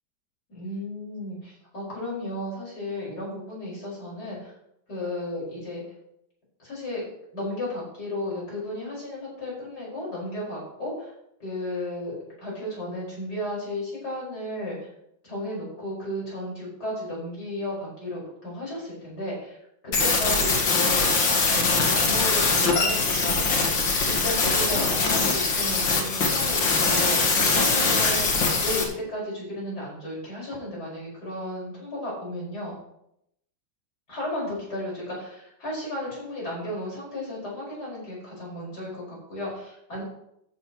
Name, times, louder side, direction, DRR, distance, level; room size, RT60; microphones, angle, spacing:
voice 1, 0.5-4.5 4.9-5.8 6.6-7.0 7.3-11.1 11.4-14.9 15.2-19.6 19.8-23.5 24.0-32.7 34.1-40.0, left 1 dB, 50° left, -5 dB, 6.1 m, -34 dB
sound 1, 19.9-28.8, left 4 dB, 65° left, 2.6 m, -22 dB
14.5 x 11.0 x 3.2 m, 0.76 s
omnidirectional pair, 2.3 m